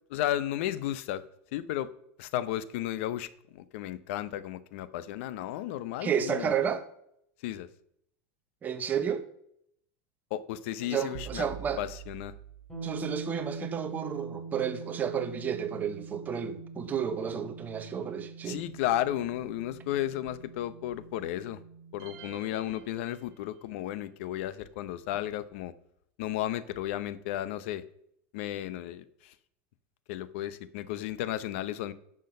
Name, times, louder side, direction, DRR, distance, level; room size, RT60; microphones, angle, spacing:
voice 1, 0.1-1.2 1.5-1.9 2.2-6.5 7.4-7.7 10.3-11.5 11.8-12.3 18.4-21.6 21.9-25.7 26.2-27.8 28.3-29.3 30.1-31.9, left 13 dB, 70° left, 0.8 m, -33 dB
voice 2, 6.0-6.8 8.6-9.2 10.8-11.8 12.8-18.6, right 8 dB, 25° right, 1.2 m, -31 dB
sound 1, 11.1-13.3, right 11 dB, 65° right, 0.9 m, -45 dB
sound 2, 12.7-22.5, right 4 dB, 5° left, 3.8 m, -44 dB
sound 3, 22.0-23.8, right 7 dB, 50° right, 3.7 m, -52 dB
10.5 x 6.3 x 5.5 m
supercardioid pair, 140°, 7 cm